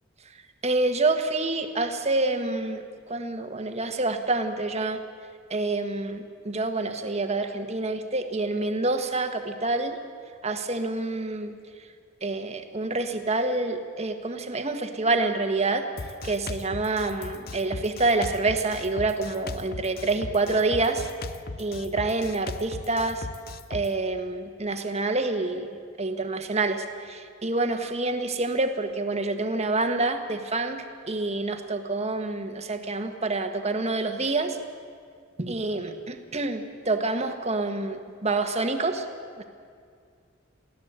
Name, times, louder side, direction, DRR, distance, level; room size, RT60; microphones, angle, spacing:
voice 1, 0.6-5.0 5.5-10.0 10.4-11.5 12.2-15.9 16.2-21.0 21.6-23.3 23.7-25.7 26.0-34.6 35.4-39.1 39.4-39.5, right 2 dB, 30° right, 6 dB, 1.5 m, -27 dB
Drum kit, 16.0-23.9, left 3 dB, 50° left, 0.7 m, -38 dB
23.0 x 16.0 x 8.1 m, 2.2 s
head